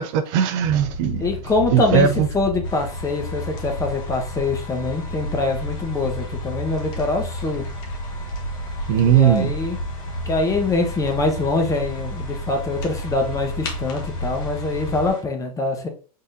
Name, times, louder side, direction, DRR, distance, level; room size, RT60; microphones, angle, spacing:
voice 1, 0.0-1.3 1.7-2.3 8.9-9.5, right 9 dB, 55° right, 0.6 m, -18 dB
sound 1, 0.6-15.1, equal, 70° left, 2.0 m, -31 dB
voice 2, 1.2-2.1 2.3-7.6 9.0-9.8 10.3-15.9, left 3 dB, 15° left, 0.9 m, -24 dB
sound 2, 2.6-15.2, left 3 dB, 55° left, 1.3 m, -41 dB
4.0 x 3.7 x 2.5 m
hypercardioid pair, 120°, 19 cm